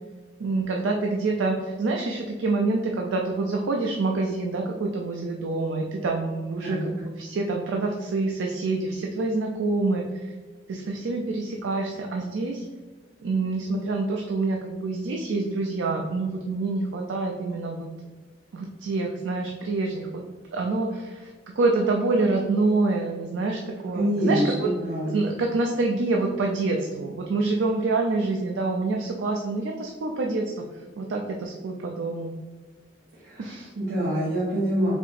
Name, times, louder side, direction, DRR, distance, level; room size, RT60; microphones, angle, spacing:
voice 1, 0.4-10.0 10.7-12.6 13.2-17.9 18.5-20.2 20.5-24.7 25.1-30.6 31.0-32.3 33.4-33.7, right 3 dB, 80° right, 1 dB, 0.4 m, -26 dB
voice 2, 6.6-6.9 23.9-25.3 33.2-34.9, right 1 dB, 60° right, -8 dB, 0.8 m, -26 dB
4.3 x 2.8 x 2.5 m, 1.3 s
head